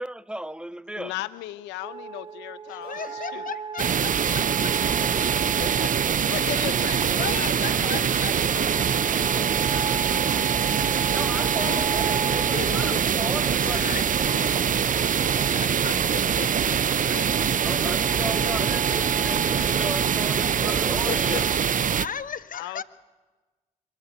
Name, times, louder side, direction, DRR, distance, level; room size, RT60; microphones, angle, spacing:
voice 1, 0.0-1.2 11.1-14.0 17.6-21.5, right 1 dB, 5° right, 0.7 m, -35 dB
voice 2, 1.0-3.5 5.6-9.4 9.7-10.2 14.8-16.0 21.1-21.4 22.5-22.8, left 16 dB, 85° left, 0.7 m, -37 dB
sound 1, 1.8-21.5, right 6 dB, 30° right, 1.3 m, -37 dB
voice 3, 2.7-4.7 5.2-5.3 7.2-8.6 11.5-13.0 13.4-14.5 15.3-17.2 18.3-18.5 22.0-22.8, left 7 dB, 50° left, 1.0 m, -36 dB
sound 2, 2.8-3.5 4.7-5.4 6.5-7.3 8.4-9.1 10.2-10.8, right 5 dB, 60° right, 5.0 m, -46 dB
sound 3, 3.8-22.0, right 7 dB, 45° right, 0.7 m, -23 dB
24.0 x 13.5 x 9.5 m
hypercardioid pair, 45°, 18 cm